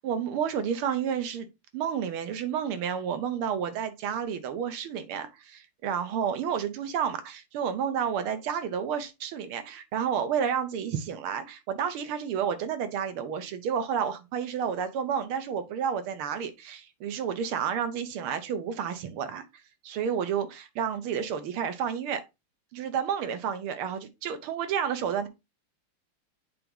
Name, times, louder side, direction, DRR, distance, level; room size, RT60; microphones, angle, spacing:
voice 1, 0.0-1.5 1.7-19.4 19.8-22.2 22.7-25.3, right 8 dB, 75° right, 1.9 m, -30 dB
7.5 x 3.0 x 5.3 m
omnidirectional pair, 2.4 m